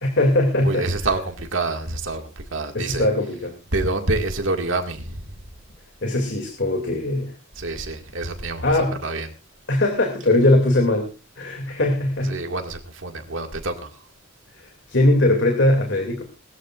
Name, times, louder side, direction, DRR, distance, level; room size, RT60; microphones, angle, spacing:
voice 1, 0.0-0.9 2.7-3.5 6.0-7.3 8.6-9.0 9.7-11.1 11.4-12.4 14.9-16.2, left 1 dB, 60° left, 3 dB, 2.6 m, -20 dB
voice 2, 0.6-3.1 3.7-5.2 7.6-8.6 9.0-9.3 12.3-13.9, right 2 dB, 70° right, 5 dB, 2.0 m, -27 dB
20.0 x 14.0 x 2.5 m, 0.33 s
head